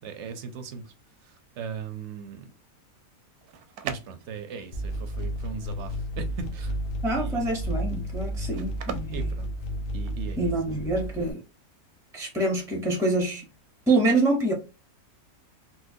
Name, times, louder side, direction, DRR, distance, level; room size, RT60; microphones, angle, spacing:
voice 1, 0.0-0.9 1.2-2.5 3.8-6.8 7.2-7.4 9.1-9.5 9.9-10.5, right 6 dB, 65° right, 0.7 m, -39 dB
sound 1, 3.2-10.3, right 8 dB, 80° right, 1.1 m, -42 dB
sound 2, 4.7-11.3, equal, 85° left, 1.2 m, -32 dB
voice 2, 7.0-9.3 10.4-11.4 12.1-13.4 13.9-14.5, right 2 dB, 5° right, 0.3 m, -26 dB
4.3 x 2.1 x 2.6 m
omnidirectional pair, 1.6 m